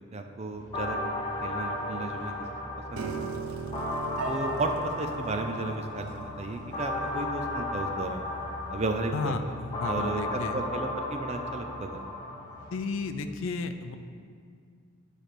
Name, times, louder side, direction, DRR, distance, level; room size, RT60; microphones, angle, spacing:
voice 1, 0.1-1.0 1.4-2.3 2.9-3.3 4.3-8.2 8.7-9.4 9.9-12.0, right 2 dB, 30° right, 5 dB, 0.4 m, -34 dB
sound 1, 0.5-13.1, left 1 dB, 65° right, 1.4 m, -48 dB
sound 2, 0.7-12.7, left 2 dB, 20° left, 0.8 m, -35 dB
Piano, 3.0-9.2, right 4 dB, 90° right, 0.5 m, -40 dB
voice 2, 9.1-10.6 12.7-14.0, left 4 dB, 70° left, 9 dB, 0.4 m, -33 dB
9.7 x 3.3 x 5.9 m, 2.2 s
head